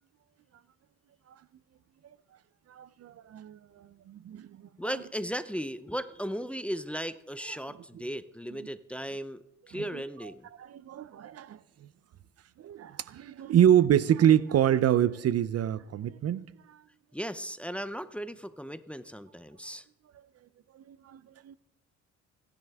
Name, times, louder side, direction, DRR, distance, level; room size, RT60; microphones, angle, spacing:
voice 1, 2.7-4.9 9.7-9.8 10.6-11.9 12.6-16.8 20.7-21.6, right 10 dB, 55° right, 0.6 m, -27 dB
voice 2, 4.8-10.5 17.1-19.8, equal, 5° left, 0.6 m, -36 dB
27.0 x 10.5 x 3.5 m
cardioid pair, 90°, 30 cm